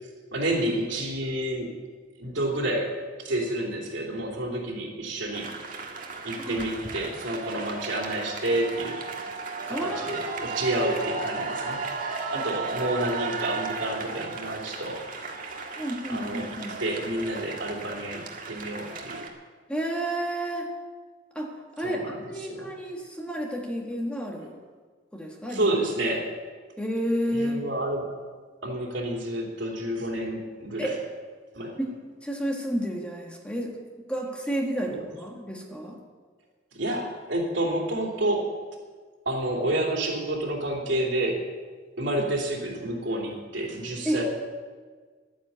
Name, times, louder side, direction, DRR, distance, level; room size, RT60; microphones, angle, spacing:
voice 1, 0.3-1.7 2.2-2.9 3.2-5.5 6.2-9.0 9.7-11.8 12.3-15.0 16.1-16.5 16.8-19.2 21.8-22.7 25.5-26.3 27.3-28.0 28.6-31.0 31.5-31.8 34.9-35.0 36.7-38.5 39.2-41.4 42.0-44.2, right 1 dB, 70° right, 0 dB, 3.1 m, -29 dB
sound 1, 5.3-19.3, right 4 dB, 45° right, 1.7 m, -35 dB
voice 2, 9.7-10.5 12.3-12.4 15.8-16.7 19.7-20.7 21.3-24.5 25.1-25.7 26.8-27.7 30.8-31.0 31.8-31.9 32.2-33.7 34.1-36.0 44.0-44.2, equal, 5° left, 0 dB, 1.5 m, -31 dB
12.0 x 10.0 x 8.2 m, 1.5 s
head